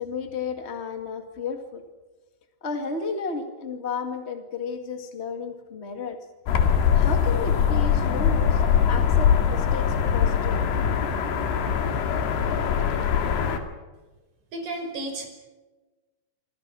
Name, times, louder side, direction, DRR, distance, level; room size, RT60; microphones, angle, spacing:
voice 1, 0.0-1.8 2.6-6.2 6.9-10.6 11.2-11.3, left 5 dB, 40° left, 6 dB, 0.9 m, -33 dB
sound 1, 6.5-13.6, left 7 dB, 85° left, 4.2 m, -22 dB
voice 2, 14.5-15.3, right 2 dB, 50° right, 4 dB, 6.5 m, -32 dB
27.5 x 26.5 x 6.2 m, 1.2 s
omnidirectional pair, 4.6 m